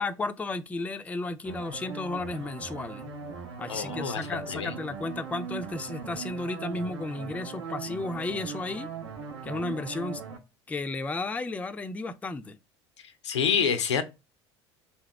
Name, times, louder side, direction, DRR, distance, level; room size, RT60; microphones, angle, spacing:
voice 1, 0.0-3.1 3.6-8.9 9.4-10.2 10.7-12.6, left 3 dB, 10° left, 0.3 m, -33 dB
sound 1, 1.4-10.4, right 5 dB, 80° right, 0.7 m, -39 dB
voice 2, 3.7-4.8 13.2-14.0, left 7 dB, 80° left, 0.5 m, -27 dB
3.3 x 2.9 x 3.1 m
figure-of-eight pair, 70°, 15 cm